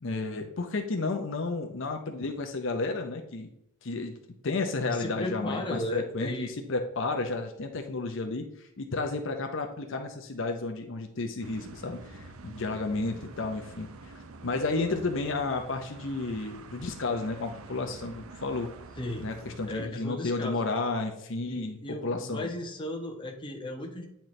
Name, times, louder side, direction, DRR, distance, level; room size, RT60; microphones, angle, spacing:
voice 1, 0.0-3.5 3.8-4.2 4.4-14.1 14.4-18.7 19.2-22.5, left 3 dB, 60° left, 4 dB, 0.7 m, -32 dB
voice 2, 4.9-6.5 19.0-19.3 19.7-20.6 21.5-24.1, left 1 dB, 25° left, 1 dB, 1.0 m, -35 dB
sound 1, 11.4-19.9, right 3 dB, 85° right, 0.6 m, -47 dB
9.0 x 4.4 x 3.2 m, 0.77 s
head